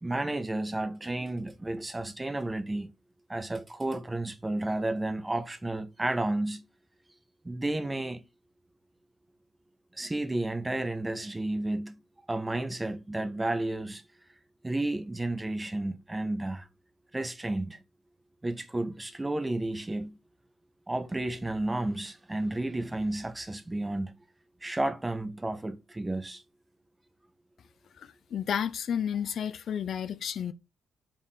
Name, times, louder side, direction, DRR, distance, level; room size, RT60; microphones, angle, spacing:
voice 1, 0.0-2.9 3.3-6.6 7.4-8.2 9.9-12.0 12.3-14.0 14.6-16.7 17.1-17.8 18.4-20.2 20.9-24.2 24.6-26.4, right 2 dB, 15° right, 0.6 m, -32 dB
voice 2, 28.0-30.5, left 8 dB, 60° left, 0.3 m, -32 dB
3.6 x 2.4 x 4.0 m
cardioid pair, 90°, 0 cm